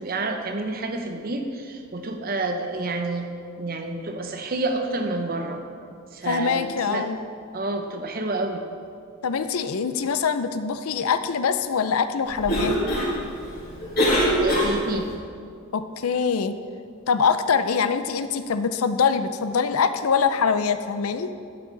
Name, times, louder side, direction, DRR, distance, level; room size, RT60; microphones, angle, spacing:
voice 1, 0.0-3.3 3.6-5.6 5.9-7.1 7.5-8.6 14.4-15.1, right 2 dB, 45° right, 5 dB, 0.8 m, -29 dB
voice 2, 6.2-7.2 9.2-12.8 15.7-16.6 17.1-21.3, left 6 dB, 90° left, 11 dB, 0.5 m, -24 dB
Cough, 12.3-15.1, equal, 45° left, 2.5 m, -24 dB
12.0 x 7.7 x 4.0 m, 2.3 s
head